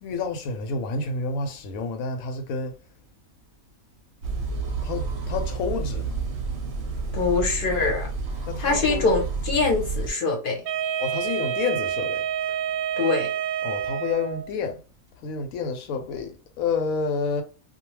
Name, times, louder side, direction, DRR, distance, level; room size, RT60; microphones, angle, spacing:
voice 1, 0.0-2.7 4.8-6.1 8.5-9.1 11.0-12.3 13.6-14.8 15.2-17.4, left 4 dB, 80° left, 1.0 m, -29 dB
sound 1, 4.2-10.1, right 4 dB, 60° right, 0.7 m, -30 dB
voice 2, 7.1-8.1 8.6-10.6 13.0-13.3, left 3 dB, 45° left, 0.8 m, -23 dB
Wind instrument woodwind instrument, 10.6-14.5, right 9 dB, 90° right, 1.1 m, -28 dB
2.3 x 2.2 x 3.0 m
omnidirectional pair, 1.5 m